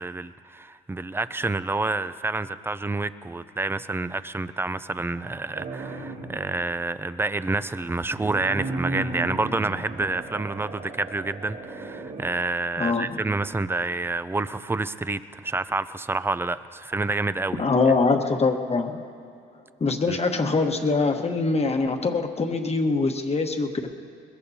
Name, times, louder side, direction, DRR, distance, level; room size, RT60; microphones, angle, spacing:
voice 1, 0.0-17.6 20.1-20.2, right 3 dB, 10° right, 14 dB, 0.5 m, -28 dB
sound 1, 5.5-6.6 7.8-12.2, right 2 dB, 80° right, 3.7 m, -35 dB
voice 2, 17.6-19.0 19.8-23.9, left 3 dB, 30° left, 4 dB, 1.3 m, -23 dB
22.0 x 21.0 x 2.8 m, 2.6 s
cardioid pair, 90°, 20 cm